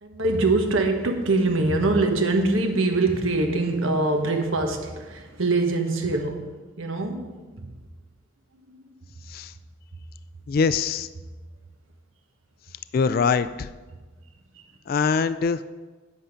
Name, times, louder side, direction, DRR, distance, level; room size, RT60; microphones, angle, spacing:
voice 1, 0.0-7.8 8.7-8.8 14.5-14.7, right 2 dB, 80° right, 4 dB, 1.3 m, -24 dB
voice 2, 10.5-11.1 12.9-13.7 14.9-15.6, left 5 dB, 45° left, 13 dB, 0.3 m, -23 dB
9.7 x 8.0 x 5.0 m, 1.3 s
head